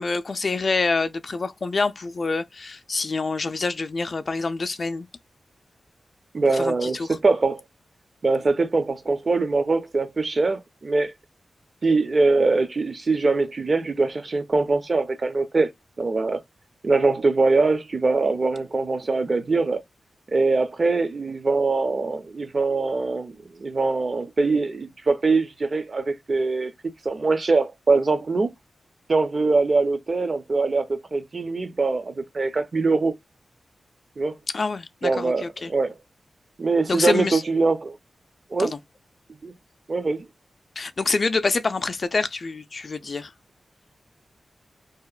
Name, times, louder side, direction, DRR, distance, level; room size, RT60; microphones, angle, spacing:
voice 1, 0.0-5.1 6.5-7.2 34.5-35.7 36.9-37.4 38.6-38.8 40.8-43.3, left 3 dB, 50° left, 0.3 m, -26 dB
voice 2, 6.3-7.6 8.2-11.1 11.8-15.7 16.0-16.4 16.8-19.8 20.3-26.7 27.0-28.5 29.1-33.1 34.2-34.3 35.0-35.9 36.6-38.0 38.5-38.7 39.4-39.5 39.9-40.3, right 3 dB, 50° right, 0.6 m, -22 dB
2.8 x 2.1 x 2.3 m
cardioid pair, 75°, 0 cm